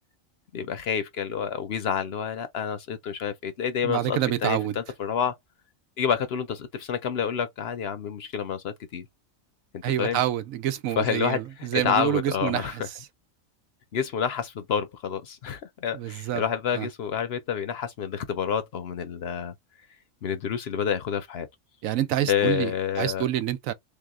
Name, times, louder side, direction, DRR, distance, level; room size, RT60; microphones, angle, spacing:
voice 1, 0.5-5.3 6.0-9.1 9.7-10.2 11.0-12.9 13.9-19.5 20.2-21.5 22.3-23.3, left 7 dB, 60° left, 0.8 m, -28 dB
voice 2, 3.8-4.8 9.8-13.1 15.9-16.4 16.7-16.9 21.8-22.7 23.0-23.7, right 12 dB, 85° right, 1.0 m, -27 dB
3.5 x 2.8 x 3.6 m
omnidirectional pair, 1.4 m